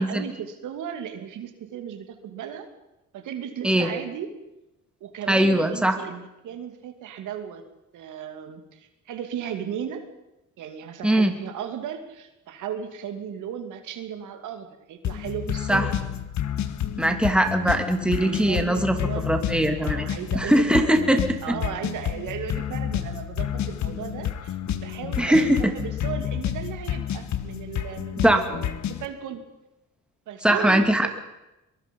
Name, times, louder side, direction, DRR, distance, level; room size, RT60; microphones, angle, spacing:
voice 1, 0.0-2.7 3.1-4.3 5.0-7.6 7.9-10.1 10.6-15.9 18.2-19.3 19.8-29.4 30.3-31.1, right 8 dB, 85° right, 7 dB, 2.7 m, -36 dB
voice 2, 5.3-6.0 11.0-11.3 15.7-15.8 17.0-18.9 19.3-20.1 20.3-21.2 25.2-25.7 28.2-28.4 30.4-31.1, right 1 dB, 5° right, 5 dB, 2.6 m, -20 dB
sound 1, 15.0-29.1, left 10 dB, 65° left, 1.5 m, -30 dB
23.0 x 22.0 x 5.5 m, 0.94 s
cardioid pair, 90°, 30 cm